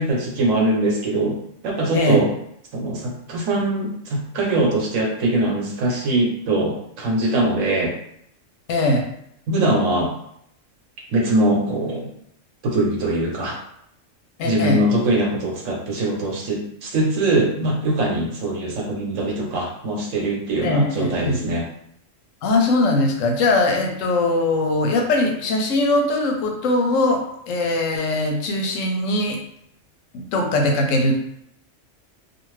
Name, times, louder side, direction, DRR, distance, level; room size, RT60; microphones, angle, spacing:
voice 1, 0.0-1.4 1.6-2.3 2.7-7.9 9.5-10.1 11.1-12.1 12.6-13.6 14.4-21.7, right 1 dB, 85° right, -1 dB, 1.2 m, -22 dB
voice 2, 8.7-9.1 14.4-14.8 20.6-21.4 22.4-29.4 30.1-31.2, left 2 dB, 85° left, 2 dB, 1.0 m, -21 dB
2.5 x 2.4 x 3.1 m, 0.72 s
omnidirectional pair, 1.3 m